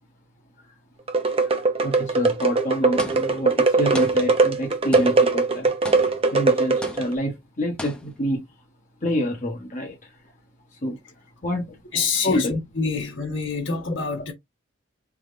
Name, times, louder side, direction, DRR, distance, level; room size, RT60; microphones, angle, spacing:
sound 1, 1.1-7.1, right 3 dB, 30° right, 0.7 m, -21 dB
voice 1, 1.8-5.7 6.3-8.5 9.0-10.1 10.8-11.0 11.4-11.8 12.2-12.6, left 1 dB, 40° left, 1.1 m, -27 dB
sound 2, 3.0-3.6 3.9-4.6 4.9-5.4 5.8-6.4 6.8-7.3 7.8-8.4, left 1 dB, 5° left, 0.7 m, -38 dB
voice 2, 11.9-14.3, left 4 dB, 70° left, 1.6 m, -27 dB
3.5 x 2.8 x 3.7 m
head